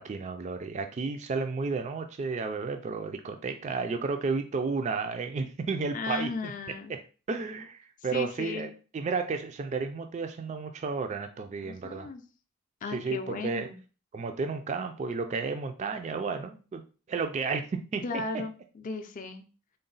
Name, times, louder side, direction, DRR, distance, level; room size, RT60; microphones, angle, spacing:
voice 1, 0.0-6.5 6.9-7.0 7.3-12.1 12.9-13.7 14.1-16.8 17.1-18.2, right 4 dB, 35° right, 6 dB, 0.3 m, -32 dB
voice 2, 5.9-7.0 8.1-8.7 11.6-12.2 12.8-13.8 18.0-19.4, left 4 dB, 40° left, 6 dB, 0.4 m, -36 dB
3.8 x 2.1 x 3.9 m, 0.35 s
head